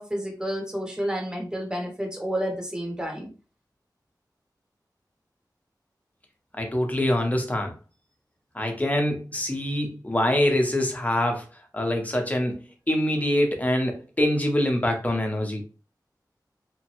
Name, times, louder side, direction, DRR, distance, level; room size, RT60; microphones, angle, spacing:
voice 1, 0.0-3.3, equal, 10° right, 0 dB, 0.9 m, -30 dB
voice 2, 6.6-7.7 8.5-11.5 11.7-15.6, left 1 dB, 20° left, 3 dB, 0.8 m, -24 dB
3.0 x 2.1 x 2.9 m, 0.35 s
wide cardioid pair, 60°, 7 cm